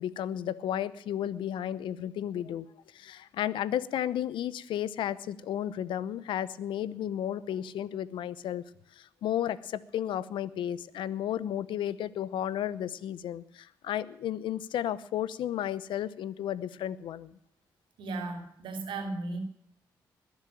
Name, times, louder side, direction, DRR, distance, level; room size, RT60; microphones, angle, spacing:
voice 1, 0.0-2.7 2.9-8.6 8.9-17.3, left 10 dB, 80° left, 17 dB, 0.9 m, -33 dB
voice 2, 18.0-19.4, right 3 dB, 80° right, 6 dB, 3.2 m, -35 dB
21.5 x 7.4 x 8.7 m, 0.70 s
supercardioid pair, 60°, 8 cm